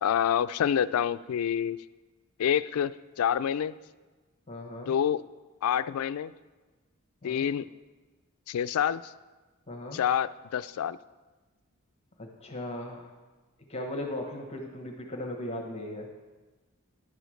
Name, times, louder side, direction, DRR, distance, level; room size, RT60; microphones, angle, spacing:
voice 1, 0.0-1.8 2.4-3.7 4.9-5.2 5.6-6.3 7.2-7.7 8.5-9.1 9.9-11.0, left 9 dB, 75° left, 16 dB, 0.3 m, -27 dB
voice 2, 4.5-4.9 7.2-7.5 9.7-10.0 12.2-13.1 13.7-16.1, left 1 dB, 30° left, 1 dB, 1.1 m, -37 dB
10.5 x 5.1 x 6.3 m, 1.3 s
head